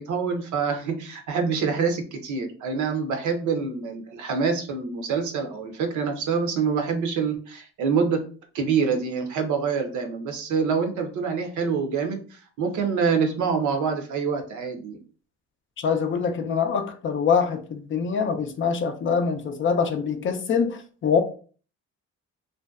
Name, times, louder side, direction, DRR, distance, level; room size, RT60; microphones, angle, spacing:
voice 1, 0.0-8.2 8.5-15.0, right 5 dB, 75° right, 0.7 m, -26 dB
voice 2, 15.8-21.2, left 6 dB, 45° left, 0.4 m, -24 dB
2.6 x 2.2 x 2.3 m
cardioid pair, 90°, 30 cm